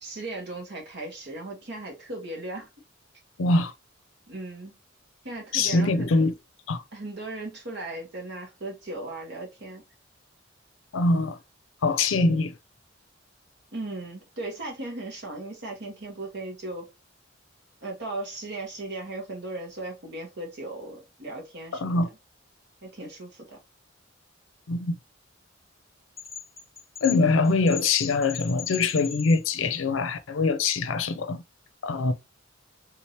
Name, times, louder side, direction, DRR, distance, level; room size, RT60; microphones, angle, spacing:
voice 1, 0.0-2.7 4.3-4.7 5.2-6.1 6.9-9.8 13.7-16.9 17.8-22.2 22.8-23.6, right 2 dB, 60° right, 1.5 m, -37 dB
voice 2, 3.4-3.7 5.5-6.3 6.7-6.8 10.9-11.4 11.8-12.5 21.8-22.1 24.7-25.0 27.0-31.4 31.8-32.1, left 3 dB, 90° left, 0.5 m, -23 dB
sound 1, 26.2-29.7, left 7 dB, 15° left, 1.3 m, -39 dB
3.6 x 2.9 x 3.0 m
head